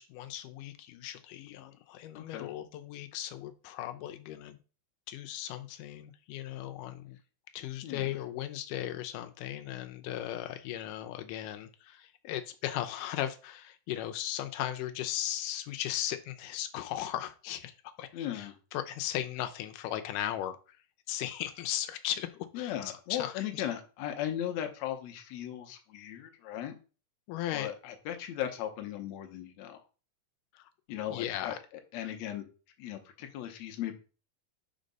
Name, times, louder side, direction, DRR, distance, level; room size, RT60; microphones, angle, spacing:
voice 1, 0.0-4.6 5.1-7.2 7.5-20.8 21.1-22.7 23.1-23.6 27.3-27.7 30.5-30.6 31.1-31.6, left 12 dB, 90° left, 8 dB, 2.2 m, -37 dB
voice 2, 2.1-2.5 7.8-8.2 18.1-18.6 22.5-26.7 27.5-29.8 30.9-31.5 31.9-32.5 32.8-34.0, left 11 dB, 70° left, 5 dB, 2.1 m, -37 dB
5.1 x 4.6 x 5.3 m, 0.35 s
omnidirectional pair, 3.6 m